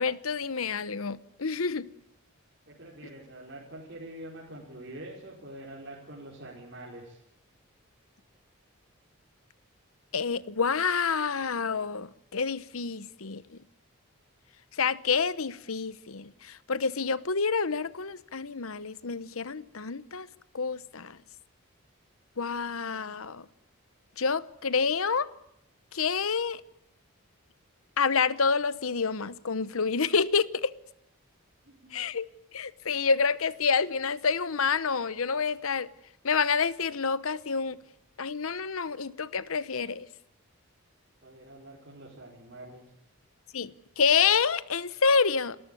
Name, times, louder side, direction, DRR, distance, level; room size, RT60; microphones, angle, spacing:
voice 1, 0.0-1.9 10.1-13.4 14.8-20.3 20.5-21.2 22.4-23.4 24.2-25.3 25.9-26.6 28.0-30.7 31.9-32.3 32.5-35.9 36.2-37.8 38.2-40.1 43.5-45.6, left 5 dB, 75° left, 0.9 m, -28 dB
voice 2, 2.7-7.2 31.6-31.9 41.2-42.8, right 1 dB, 50° right, 4.6 m, -45 dB
29.5 x 13.5 x 9.8 m
head